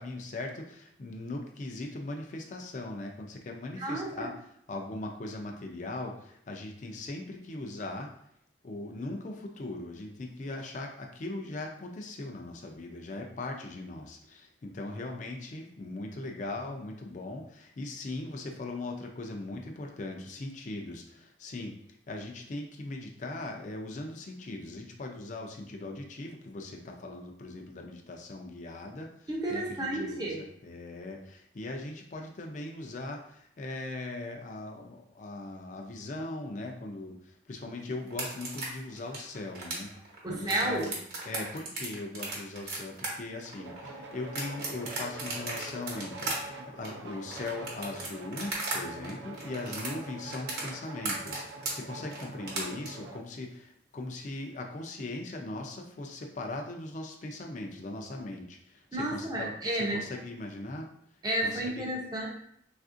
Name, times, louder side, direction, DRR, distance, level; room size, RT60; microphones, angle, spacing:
voice 1, 0.0-4.3 4.7-8.1 8.6-21.8 22.1-39.9 40.3-40.9 41.3-59.5 59.8-60.9 61.4-61.9, left 2 dB, 40° left, 2 dB, 0.4 m, -39 dB
voice 2, 3.8-4.3 29.3-30.4 40.2-40.9 58.9-60.1 61.2-62.3, right 1 dB, 20° right, -2 dB, 0.5 m, -31 dB
sound 1, 38.1-48.8 49.0-52.9, right 3 dB, 50° right, 0.9 m, -36 dB
sound 2, 43.6-53.2, right 2 dB, 80° right, 0.5 m, -44 dB
3.4 x 2.4 x 2.5 m, 0.71 s
head